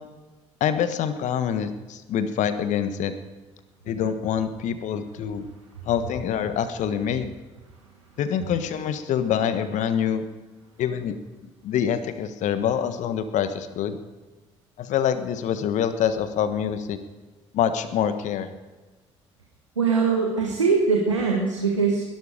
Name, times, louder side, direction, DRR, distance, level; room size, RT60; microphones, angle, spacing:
voice 1, 0.6-3.1 3.9-5.4 5.8-7.3 8.2-10.2 10.8-11.2 11.6-14.0 14.8-17.0 17.5-18.5, left 8 dB, 55° left, 11 dB, 1.3 m, -25 dB
voice 2, 19.8-22.0, right 5 dB, 85° right, -1 dB, 1.7 m, -22 dB
21.0 x 12.0 x 5.1 m, 1.3 s
figure-of-eight pair, 50°, 15 cm